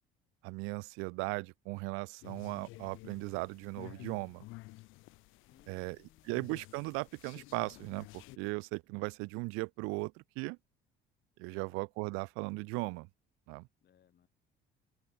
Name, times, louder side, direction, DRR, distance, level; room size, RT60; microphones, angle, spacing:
voice 1, 0.4-4.4 5.7-6.0 6.2-10.6 11.4-13.1 13.5-13.7, right 28 dB, 80° right, 0.8 m, -37 dB
sound 1, 2.2-8.4, left 21 dB, 75° left, 0.9 m, -52 dB
voice 2, 5.5-6.6 11.5-11.8 13.8-14.3, left 10 dB, 55° left, 7.0 m, -67 dB
open air
supercardioid pair, 85°, 21 cm